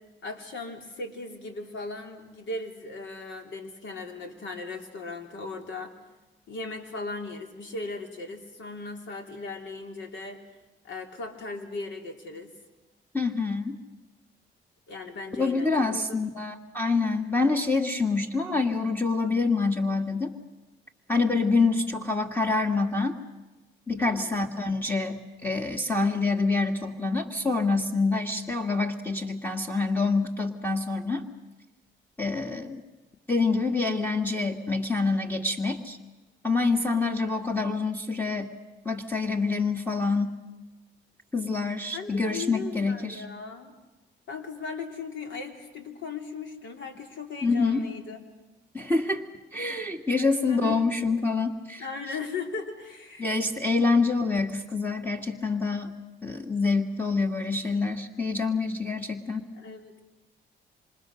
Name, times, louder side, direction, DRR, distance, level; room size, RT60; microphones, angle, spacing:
voice 1, 0.2-5.9 6.5-10.4 10.8-12.5 14.9-16.3 24.0-24.4 41.9-43.8 44.3-48.2 50.2-50.8 51.8-53.3 59.0-59.1 59.5-60.0, left 3 dB, 70° left, 4 dB, 3.7 m, -38 dB
voice 2, 13.1-13.8 15.4-20.3 21.1-23.1 23.9-31.2 32.2-32.8 33.3-36.0 36.4-38.5 38.9-40.3 41.3-43.2 47.4-47.9 48.7-49.3 49.5-51.8 53.2-55.9 56.2-59.4, left 3 dB, 10° left, 3 dB, 2.0 m, -26 dB
27.0 x 26.5 x 6.4 m, 1.1 s
cardioid pair, 90°, 20 cm